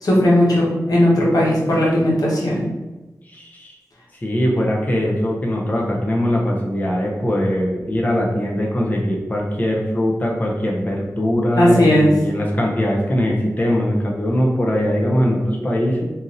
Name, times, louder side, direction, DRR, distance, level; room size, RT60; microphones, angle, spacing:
voice 1, 0.0-2.6 11.6-12.1, left 1 dB, 80° left, -5 dB, 1.1 m, -16 dB
voice 2, 3.2-3.8 4.2-16.1, equal, 25° left, -2 dB, 0.5 m, -21 dB
2.8 x 2.6 x 3.8 m, 1.1 s
wide cardioid pair, 100°, 6 cm